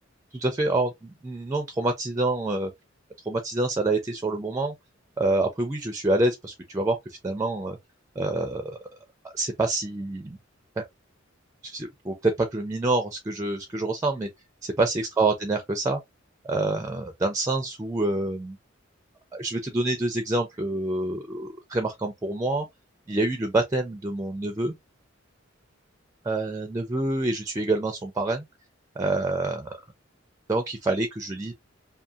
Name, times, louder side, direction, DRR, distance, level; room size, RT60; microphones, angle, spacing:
voice 1, 0.3-2.7 3.2-4.7 5.2-7.8 8.2-8.8 9.3-10.4 10.8-10.9 11.6-14.3 14.6-16.0 16.4-18.6 19.3-22.7 23.1-24.7 26.2-28.5 29.0-29.8 30.5-31.5, right 2 dB, 15° right, 0.4 m, -27 dB
2.7 x 2.6 x 2.3 m
head